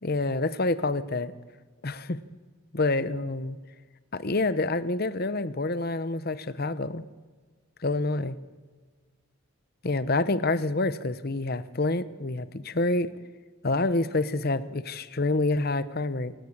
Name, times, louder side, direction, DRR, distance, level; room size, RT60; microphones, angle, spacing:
voice 1, 0.0-1.3 1.8-2.2 2.7-3.6 4.1-7.0 7.8-8.4 9.8-13.1 13.6-16.3, left 2 dB, 45° left, 14 dB, 0.9 m, -27 dB
27.5 x 19.5 x 8.7 m, 1.4 s
head